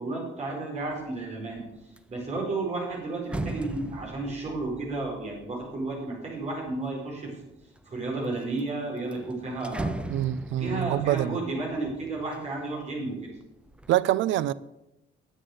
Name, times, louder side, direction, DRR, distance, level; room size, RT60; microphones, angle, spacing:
voice 1, 0.0-1.6 2.1-7.3 7.8-10.0 10.6-13.1, right 2 dB, 35° right, 4.8 m, -32 dB
sound 1, 0.9-1.2 1.6-7.0 7.6-8.2 8.6-8.7 9.0-12.9 13.3-13.9, right 2 dB, 5° right, 0.5 m, -39 dB
voice 2, 10.1-11.4 13.9-14.5, right 13 dB, 70° right, 0.5 m, -25 dB
10.0 x 8.0 x 7.9 m
cardioid pair, 145°, 20 cm